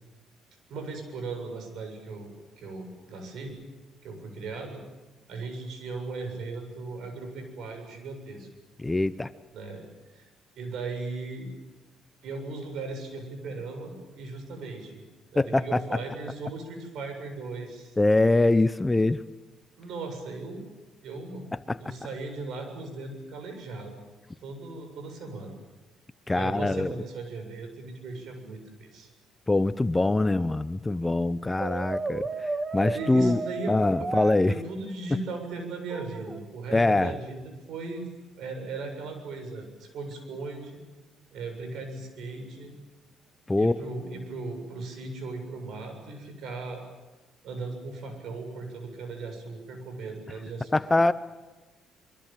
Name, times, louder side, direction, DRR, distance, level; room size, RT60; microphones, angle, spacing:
voice 1, 0.7-3.6 4.0-4.8 5.3-8.5 9.5-9.8 10.1-10.3 10.5-11.5 12.2-15.0 15.3-17.9 19.8-20.6 21.0-21.4 21.7-23.9 24.4-25.5 26.3-29.1 32.9-34.1 34.5-38.1 38.4-40.8 41.3-42.8 43.6-46.8 47.4-50.8, right 3 dB, 70° right, 6 dB, 7.6 m, -37 dB
voice 2, 8.8-9.3 15.4-15.8 18.0-19.2 21.7-21.8 26.3-26.9 29.5-32.2 32.7-33.4 33.7-34.5 36.7-37.1 43.5-43.8 50.7-51.1, left 2 dB, 15° left, 14 dB, 0.8 m, -23 dB
Brass instrument, 31.6-34.4 35.9-36.5, right 3 dB, 25° right, 1.7 m, -33 dB
25.5 x 24.0 x 7.6 m, 1.1 s
cardioid pair, 90°, 0 cm